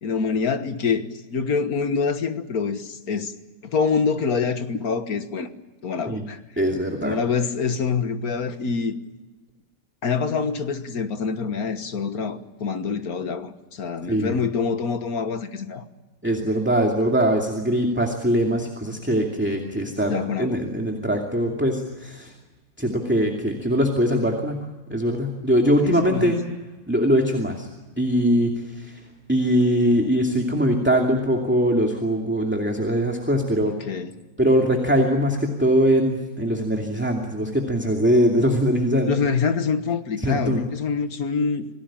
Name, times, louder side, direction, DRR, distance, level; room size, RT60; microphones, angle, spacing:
voice 1, 0.0-3.3 3.6-5.5 5.8-6.4 7.0-9.0 10.0-15.8 20.1-20.6 25.8-26.4 33.7-34.1 39.1-41.7, left 5 dB, 70° left, 1.9 m, -26 dB
voice 2, 6.6-7.2 14.1-14.4 16.2-22.3 22.8-26.3 26.9-27.7 28.0-29.0 29.3-33.8 34.4-39.1 40.2-40.6, equal, 5° right, 2.5 m, -22 dB
27.5 x 18.5 x 8.8 m
omnidirectional pair, 1.6 m